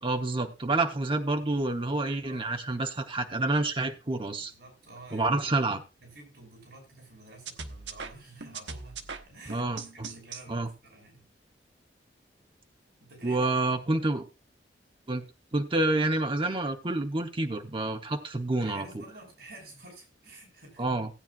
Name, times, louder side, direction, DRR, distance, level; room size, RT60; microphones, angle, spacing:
voice 1, 0.0-4.5 5.1-5.8 9.5-9.8 10.5-10.7 13.2-14.2 15.1-15.2 15.5-18.8 20.8-21.1, right 2 dB, 30° right, 1.0 m, -28 dB
voice 2, 2.2-2.7 4.3-5.7 6.0-11.3 13.0-13.8 18.5-20.9, right 2 dB, 65° right, 5.8 m, -50 dB
sound 1, 7.5-10.4, right 5 dB, 85° right, 1.1 m, -40 dB
16.5 x 9.1 x 2.5 m
head